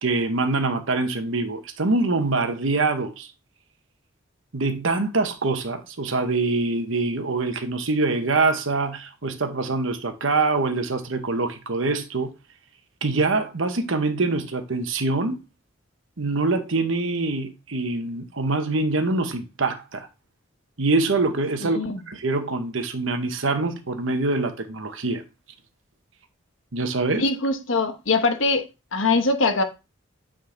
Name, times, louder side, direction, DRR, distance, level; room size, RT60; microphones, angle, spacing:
voice 1, 0.0-3.3 4.5-12.3 13.0-15.4 16.2-20.1 20.8-21.8 22.1-25.2 26.7-27.3, right 3 dB, 75° right, 1.1 m, -24 dB
voice 2, 21.6-22.0 27.2-28.6 28.9-29.6, left 3 dB, 75° left, 1.1 m, -22 dB
8.7 x 3.8 x 3.9 m
head